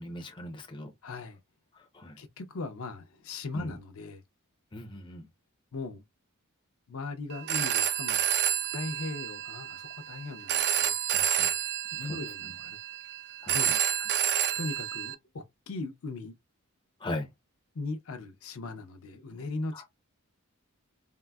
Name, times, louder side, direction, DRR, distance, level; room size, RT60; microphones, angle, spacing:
voice 1, 0.0-0.9 1.7-2.2 3.5-3.8 4.7-5.3 11.1-11.5 12.0-12.6 13.4-13.8 17.0-17.3 19.7-19.9, left 1 dB, 20° left, 0.5 m, -40 dB
voice 2, 1.0-1.4 2.2-4.2 5.7-6.0 6.9-8.2 8.7-10.9 11.9-12.8 13.5-13.7 14.6-16.3 17.7-19.9, left 3 dB, 70° left, 0.6 m, -38 dB
Telephone, 7.3-15.1, right 10 dB, 50° right, 0.3 m, -30 dB
3.7 x 2.0 x 2.2 m
head